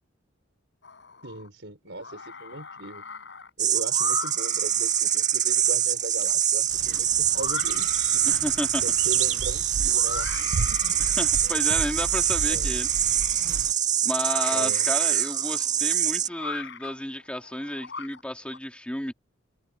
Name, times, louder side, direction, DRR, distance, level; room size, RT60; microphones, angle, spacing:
sound 1, 0.8-1.5 1.9-18.6, left 5 dB, 65° left, 6.9 m, -41 dB
voice 1, 1.2-3.0 3.6-8.2 8.8-10.3 10.7-10.9 11.4-11.6 12.5-12.7 14.5-14.9, right 2 dB, 65° right, 5.9 m, -39 dB
sound 2, 3.6-16.3, right 10 dB, 40° right, 1.9 m, -24 dB
sound 3, 6.7-13.7, right 4 dB, 85° right, 0.7 m, -35 dB
voice 2, 8.2-8.8 11.2-13.1 14.0-19.1, left 1 dB, 5° left, 2.4 m, -32 dB
head